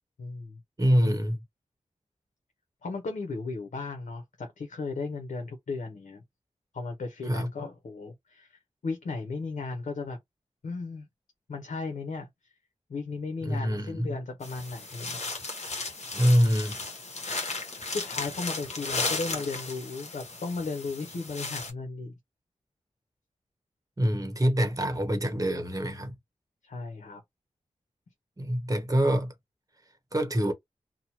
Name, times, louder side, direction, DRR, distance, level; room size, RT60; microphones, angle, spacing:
voice 1, 0.2-0.6 2.8-6.2 6.7-10.2 10.6-11.1 11.5-12.3 12.9-15.2 17.6-22.1 26.6-27.2, left 4 dB, 80° left, 0.7 m, -35 dB
voice 2, 0.8-1.4 7.3-7.5 13.4-14.1 16.1-16.8 24.0-26.1 28.4-29.3 30.1-30.5, equal, 25° right, 0.9 m, -25 dB
sound 1, 14.4-21.7, left 3 dB, 60° left, 1.1 m, -35 dB
2.7 x 2.1 x 2.9 m
cardioid pair, 45°, 13 cm